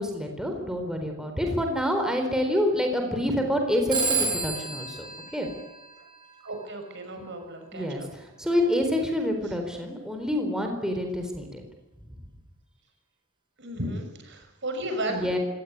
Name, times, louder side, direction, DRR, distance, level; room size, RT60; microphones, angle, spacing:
voice 1, 0.0-5.1 5.3-5.5 7.7-11.6 15.1-15.4, left 1 dB, 5° right, 3 dB, 4.1 m, -27 dB
Telephone, 3.9-6.4, right 4 dB, 25° right, 7.0 m, -30 dB
voice 2, 6.4-8.1 13.6-15.4, right 1 dB, 60° right, 6 dB, 6.1 m, -34 dB
25.5 x 18.0 x 9.9 m, 1.1 s
head